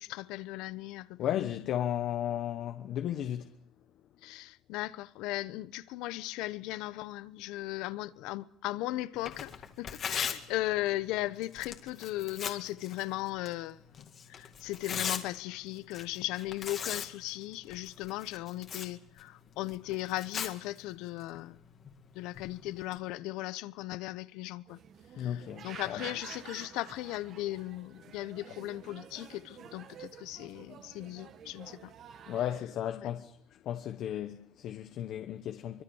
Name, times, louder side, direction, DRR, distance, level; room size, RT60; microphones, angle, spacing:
voice 1, 0.0-1.2 4.2-13.8 14.3-21.6 22.1-24.8 25.2-31.9 33.0-33.1, left 17 dB, 75° left, 1.0 m, -37 dB
voice 2, 1.2-3.5 25.1-26.0 32.3-33.4 33.6-35.8, left 11 dB, 45° left, 1.1 m, -34 dB
Tearing, 9.1-23.0, left 7 dB, 30° left, 2.1 m, -42 dB
sound 1, 24.7-32.6, right 8 dB, 40° right, 1.6 m, -50 dB
25.0 x 24.0 x 7.2 m
cardioid pair, 170°, 0 cm